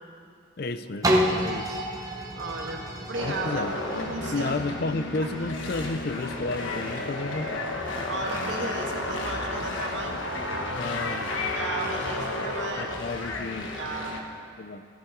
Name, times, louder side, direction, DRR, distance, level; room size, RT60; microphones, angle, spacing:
voice 1, 0.6-1.1 1.4-1.8 3.2-3.8 4.3-7.7 10.7-11.3 12.8-13.7 14.6-14.8, left 3 dB, 50° left, 11 dB, 0.5 m, -32 dB
sound 1, 1.0-6.8 7.3-7.4, equal, 15° right, 1.0 m, -30 dB
voice 2, 2.4-3.7 4.1-4.6 5.2-5.3 8.1-10.2 11.6-12.9 13.8-14.1, right 3 dB, 60° right, 0 dB, 1.7 m, -34 dB
sound 2, 3.1-14.2, left 2 dB, 70° left, 1.4 m, -32 dB
15.5 x 13.5 x 4.6 m, 2.3 s
head